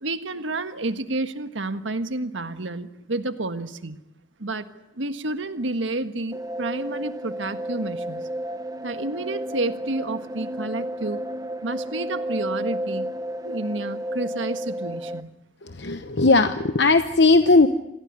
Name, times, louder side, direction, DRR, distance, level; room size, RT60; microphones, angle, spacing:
voice 1, 0.0-4.0 4.4-4.7 4.9-8.3 8.8-11.2 11.6-13.1 13.4-15.3, right 2 dB, 85° right, 10 dB, 1.6 m, -30 dB
sound 1, 6.3-15.2, equal, 20° right, 0.8 m, -32 dB
voice 2, 15.8-17.7, left 3 dB, 60° left, 10 dB, 1.0 m, -17 dB
27.0 x 16.5 x 9.9 m, 0.91 s
head